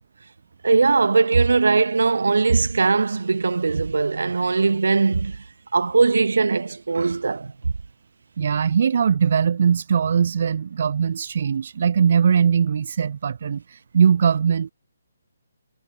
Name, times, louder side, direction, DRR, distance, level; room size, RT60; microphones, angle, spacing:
voice 1, 0.6-5.4 5.7-7.5, right 4 dB, 85° right, 1.6 m, -20 dB
voice 2, 8.4-14.7, right 7 dB, 50° right, 1.0 m, -20 dB
hypercardioid pair, 165°, 0 cm